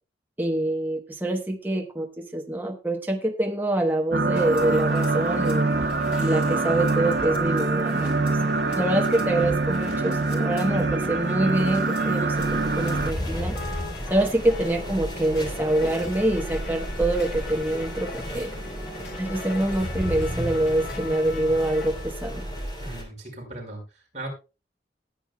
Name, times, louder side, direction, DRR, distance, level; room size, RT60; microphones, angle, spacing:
voice 1, 0.4-5.7 6.2-8.4 8.7-13.6 14.1-18.5 19.1-22.4, right 1 dB, 10° right, 2 dB, 1.1 m, -25 dB
sound 1, 4.1-13.1, right 3 dB, 60° right, 0.9 m, -24 dB
sound 2, 4.3-23.0, left 1 dB, 75° left, 3.9 m, -39 dB
sound 3, 12.3-23.0, equal, 25° left, 3.6 m, -34 dB
voice 2, 22.8-24.3, right 2 dB, 40° right, -1 dB, 5.2 m, -38 dB
20.0 x 8.9 x 2.3 m, 0.30 s
head